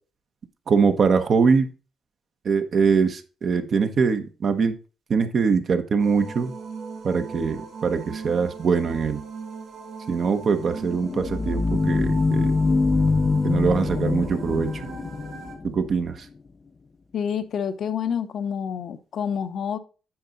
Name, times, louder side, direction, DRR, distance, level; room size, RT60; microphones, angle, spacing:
voice 1, 0.7-1.7 2.4-4.7 5.1-6.5 7.0-9.2 10.1-12.6 13.4-14.7 15.6-16.3, right 5 dB, 50° right, 1.1 m, -22 dB
sound 1, 6.0-15.5, right 5 dB, 80° right, 2.6 m, -39 dB
sound 2, 10.6-16.1, left 3 dB, 35° left, 0.5 m, -24 dB
voice 2, 17.1-19.8, left 7 dB, 60° left, 0.8 m, -28 dB
8.7 x 5.2 x 4.0 m
cardioid pair, 90°, 0 cm